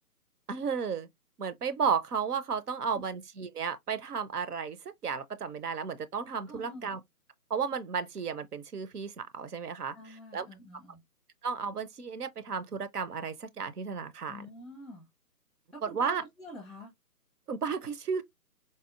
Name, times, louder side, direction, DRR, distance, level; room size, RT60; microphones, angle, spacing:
voice 1, 0.5-1.1 1.4-7.0 7.5-10.5 11.4-14.5 15.8-16.2 17.5-18.2, right 6 dB, 70° right, 0.8 m, -33 dB
voice 2, 2.7-3.0 6.5-6.9 9.9-11.0 14.2-15.1 15.7-16.9, left 1 dB, ahead, 0.5 m, -47 dB
4.1 x 2.2 x 2.3 m
figure-of-eight pair, 160°, 48 cm